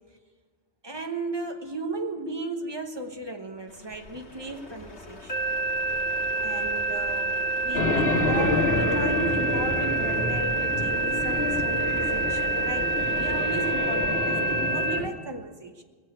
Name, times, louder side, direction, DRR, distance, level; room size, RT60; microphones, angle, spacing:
voice 1, 0.8-5.5 6.4-12.9 13.2-15.8, right 2 dB, 25° right, 5 dB, 1.2 m, -35 dB
Truck, 3.7-14.9, left 2 dB, 85° left, 2.0 m, -43 dB
sound 1, 5.3-15.0, right 4 dB, 30° left, 1.3 m, -27 dB
sound 2, 7.7-15.1, left 2 dB, 70° left, 1.9 m, -28 dB
21.0 x 7.5 x 8.6 m, 1.5 s
omnidirectional pair, 1.1 m